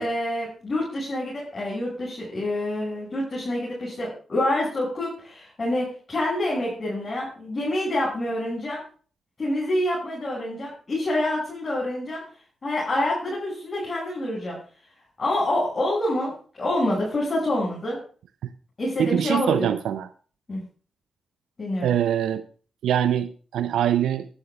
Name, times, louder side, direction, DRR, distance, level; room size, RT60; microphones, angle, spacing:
voice 1, 0.0-8.8 9.4-12.2 12.6-14.6 15.2-18.0 18.8-19.7 20.5-20.6 21.6-21.9, left 1 dB, 45° left, -5 dB, 6.4 m, -27 dB
voice 2, 19.0-20.1 21.8-22.4 22.8-24.3, right 10 dB, 80° right, 13 dB, 0.4 m, -23 dB
22.0 x 11.5 x 2.3 m, 0.41 s
supercardioid pair, 45°, 0 cm